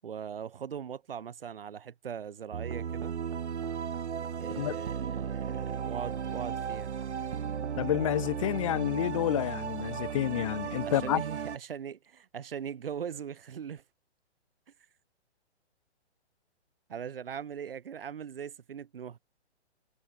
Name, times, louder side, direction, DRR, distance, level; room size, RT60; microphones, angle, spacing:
voice 1, 0.0-3.1 4.4-6.9 10.8-13.8 16.9-19.2, right 8 dB, 50° right, 7.6 m, -40 dB
sound 1, 2.5-11.6, right 7 dB, 70° right, 1.5 m, -35 dB
voice 2, 7.8-11.2, left 13 dB, 30° left, 2.5 m, -29 dB
hypercardioid pair, 170°, 35 cm